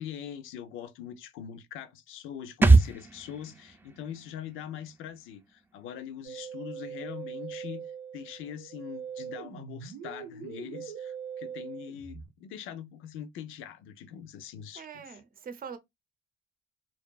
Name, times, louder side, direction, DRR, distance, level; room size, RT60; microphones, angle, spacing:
voice 1, 0.0-7.9 8.1-15.2, left 9 dB, 90° left, 0.5 m, -42 dB
sound 1, 2.6-6.1 6.4-6.5, right 3 dB, 10° right, 0.4 m, -25 dB
Musical instrument, 6.2-12.3, right 8 dB, 90° right, 0.8 m, -41 dB
voice 2, 14.8-15.8, right 7 dB, 45° right, 0.6 m, -42 dB
2.5 x 2.3 x 2.2 m
cardioid pair, 90°, 20 cm